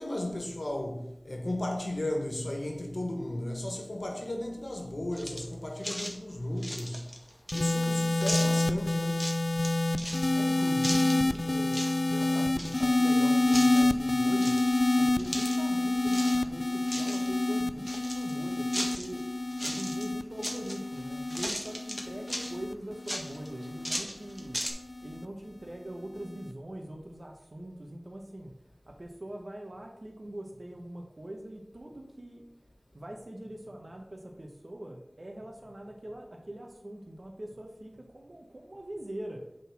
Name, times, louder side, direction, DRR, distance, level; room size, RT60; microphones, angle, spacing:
voice 1, 0.0-7.1 7.5-9.4, left 1 dB, 85° left, 1.4 m, -35 dB
sound 1, 5.1-5.5 5.8-6.1 6.6-7.8 8.2-8.6 9.1-9.7 9.9-10.3 10.8-11.4 11.7-12.0 12.2-13.1 13.5-13.9 14.4-15.7 16.0-16.4 16.7-17.3 17.8-19.2 19.5-20.1 20.4-21.0 21.3-22.5 23.1-24.7, equal, 10° left, 1.5 m, -36 dB
sound 2, 7.5-24.0 24.9-25.2, left 2 dB, 70° left, 0.4 m, -28 dB
voice 2, 10.3-24.7 25.0-28.5 28.9-32.4 32.9-39.6, right 1 dB, 75° right, 1.0 m, -42 dB
7.4 x 4.0 x 5.8 m
wide cardioid pair, 40°, 0 cm